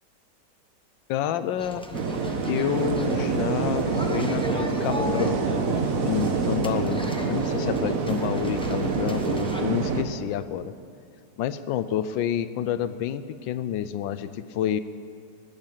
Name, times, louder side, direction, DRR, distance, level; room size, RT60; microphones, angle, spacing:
voice 1, 1.1-1.8 2.5-5.8 6.0-10.7 11.4-14.8, left 10 dB, 90° left, 13 dB, 1.4 m, -29 dB
sound 1, 1.6-9.6, equal, 5° left, 0.5 m, -36 dB
sound 2, 1.9-10.0, right 4 dB, 55° right, 1.3 m, -26 dB
18.0 x 7.2 x 8.9 m, 2.4 s
omnidirectional pair, 2.0 m